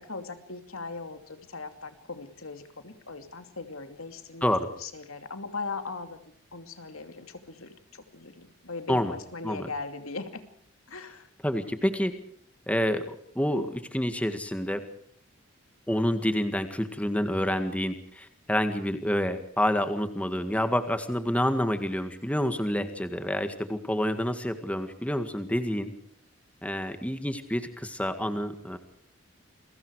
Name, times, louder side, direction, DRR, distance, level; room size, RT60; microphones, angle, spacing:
voice 1, 0.0-4.5 4.8-6.2 6.5-10.4 10.9-11.3, left 3 dB, 90° left, 8 dB, 2.7 m, -39 dB
voice 2, 11.4-12.1 12.7-14.8 15.9-25.9 26.6-28.8, equal, 5° left, 8 dB, 1.8 m, -28 dB
29.5 x 22.5 x 4.8 m, 0.64 s
head